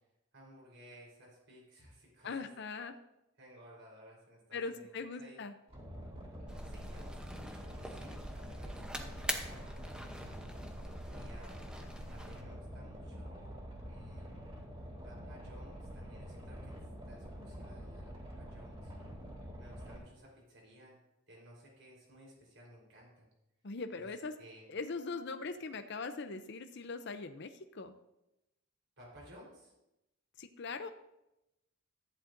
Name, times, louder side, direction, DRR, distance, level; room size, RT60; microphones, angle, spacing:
voice 1, 0.3-2.5 3.4-5.4 6.6-10.1 11.0-11.7 12.1-14.3 15.0-16.7 17.0-18.9 19.6-21.0 21.3-23.3 24.0-24.1 24.4-24.6 29.0-29.7, equal, 65° right, -3 dB, 4.1 m, -57 dB
voice 2, 2.2-3.0 4.5-5.5 11.8-11.9 23.6-24.3 24.7-27.9 30.4-30.9, left 4 dB, 55° left, 8 dB, 0.6 m, -41 dB
Boat Water vehicle, 5.7-20.0, equal, 30° right, 2.9 m, -47 dB
sound 1, 6.5-12.4, equal, 5° right, 0.8 m, -44 dB
14.0 x 10.5 x 2.6 m, 0.90 s
head